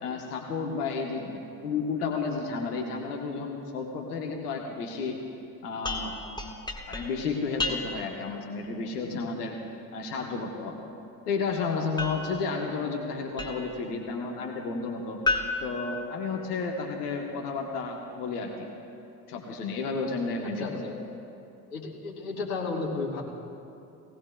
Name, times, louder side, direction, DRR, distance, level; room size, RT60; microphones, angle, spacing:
voice 1, 0.0-5.2 5.6-6.2 6.9-9.6 9.9-10.8 11.3-15.2 15.6-18.7 19.3-20.8, left 4 dB, 70° left, 1 dB, 1.3 m, -32 dB
sound 1, 5.8-8.2 12.0-13.9 15.3-16.7, left 3 dB, 10° left, 1.4 m, -34 dB
voice 2, 20.6-21.0 21.7-23.2, left 3 dB, 55° left, -5 dB, 3.5 m, -33 dB
19.0 x 17.5 x 2.3 m, 2.7 s
figure-of-eight pair, 55°, 47 cm